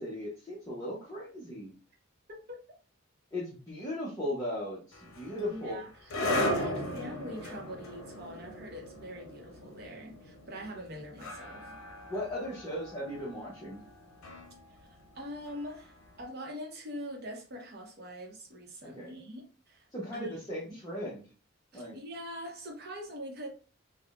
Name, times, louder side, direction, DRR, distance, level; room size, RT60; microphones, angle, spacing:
voice 1, 0.0-1.7 3.3-5.8 12.1-13.8 18.8-19.1 19.9-21.3 21.7-22.0, left 1 dB, 20° left, 0.7 m, -37 dB
voice 2, 2.3-2.6 5.4-11.8 14.8-14.9 15.1-19.9 20.1-20.8 21.7-23.5, equal, 50° right, 0.8 m, -43 dB
sound 1, 4.9-16.0, left 1 dB, 85° left, 0.6 m, -37 dB
3.5 x 2.2 x 2.4 m
head